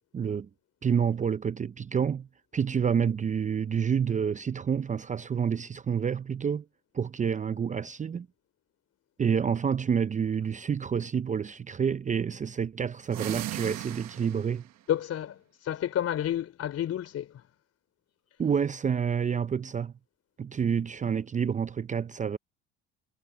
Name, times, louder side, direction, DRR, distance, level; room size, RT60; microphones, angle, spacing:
voice 1, 0.1-0.5 0.8-2.3 2.5-6.6 6.9-8.3 9.2-14.6 18.4-19.9 20.4-22.4, right 7 dB, 25° right, 0.6 m, -28 dB
sound 1, 13.0-14.7, right 14 dB, 60° right, 1.5 m, -36 dB
voice 2, 14.9-17.4, left 10 dB, 50° left, 3.9 m, -30 dB
supercardioid pair, 85°, 30 cm